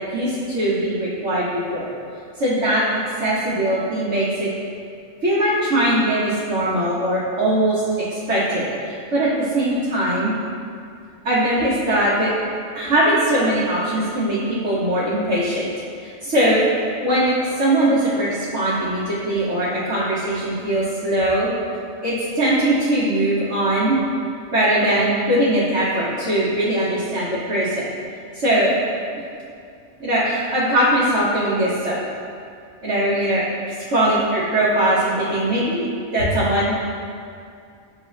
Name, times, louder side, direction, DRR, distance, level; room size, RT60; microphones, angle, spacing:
voice 1, 0.0-1.9 2.4-2.8 3.2-4.5 5.2-7.8 8.3-10.4 11.2-12.3 12.7-15.7 16.0-16.7 17.0-21.5 22.0-24.0 24.5-27.9 28.3-28.7 30.0-32.0 32.8-35.8 36.1-36.7, right 1 dB, 70° right, -11 dB, 1.3 m, -20 dB
7.1 x 2.4 x 3.1 m, 2.4 s
omnidirectional pair, 1.3 m